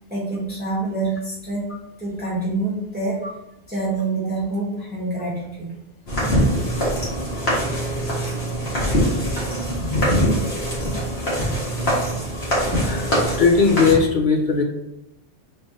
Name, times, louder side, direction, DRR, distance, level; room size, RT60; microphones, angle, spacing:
voice 1, 0.1-1.7 2.0-3.3 3.7-5.8 9.4-9.8, right 2 dB, 10° right, -7 dB, 1.3 m, -27 dB
sound 1, 6.1-13.9, equal, 70° left, 1.9 m, -23 dB
voice 2, 12.8-13.1 13.4-14.6, left 5 dB, 50° left, 0 dB, 0.9 m, -18 dB
3.9 x 3.4 x 3.9 m, 0.86 s
omnidirectional pair, 1.1 m